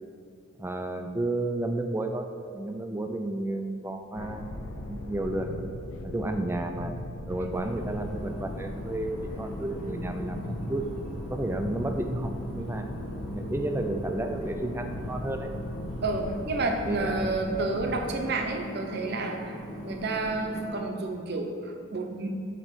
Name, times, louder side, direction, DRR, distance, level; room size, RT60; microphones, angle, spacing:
voice 1, 0.6-5.5 6.0-6.9 7.3-10.4 10.7-10.9 11.1-12.9 13.3-15.5 16.9-17.7, right 1 dB, 10° right, 5 dB, 0.3 m, -32 dB
sound 1, 4.2-18.0, left 2 dB, 80° left, 0.6 m, -39 dB
sound 2, 7.5-20.7, equal, 30° left, 1.3 m, -40 dB
voice 2, 16.0-19.6 19.8-22.3, right 3 dB, 50° right, 3 dB, 0.7 m, -30 dB
8.2 x 3.0 x 6.2 m, 2.4 s
head